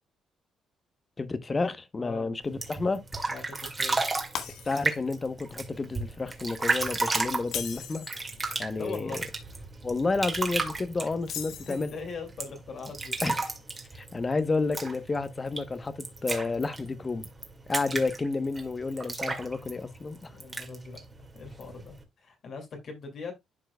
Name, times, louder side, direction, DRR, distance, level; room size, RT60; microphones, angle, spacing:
voice 1, 1.2-3.0 4.6-8.1 8.6-9.2 9.8-11.9 13.2-13.5 13.9-17.3 17.7-20.3, left 3 dB, 30° left, 1.0 m, -30 dB
voice 2, 2.0-2.3 3.3-4.0 8.8-9.2 11.5-13.2 20.3-23.3, left 4 dB, 60° left, 2.4 m, -41 dB
sound 1, 2.4-22.0, right 3 dB, 25° right, 2.0 m, -34 dB
Shatter, 4.3-5.1 5.5-5.8 7.4-8.2 11.2-12.1, left 8 dB, 80° left, 1.3 m, -38 dB
12.0 x 4.5 x 2.3 m
cardioid pair, 90°, 0 cm